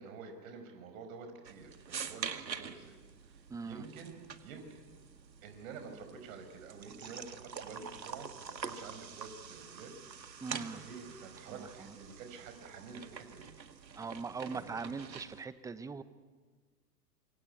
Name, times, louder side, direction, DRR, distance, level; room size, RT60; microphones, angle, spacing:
voice 1, 0.0-3.0 3.2-3.4 3.6-4.8 5.4-9.9 10.7-13.5 14.5-14.8, right 5 dB, 55° right, 6 dB, 5.8 m, -49 dB
sound 1, 1.4-15.4, right 6 dB, 85° right, 2.0 m, -46 dB
voice 2, 3.5-3.9 10.4-10.8 11.5-12.0 13.9-16.0, right 4 dB, 5° right, 14 dB, 0.8 m, -41 dB
27.0 x 24.5 x 8.5 m, 1.4 s
hypercardioid pair, 115°, 49 cm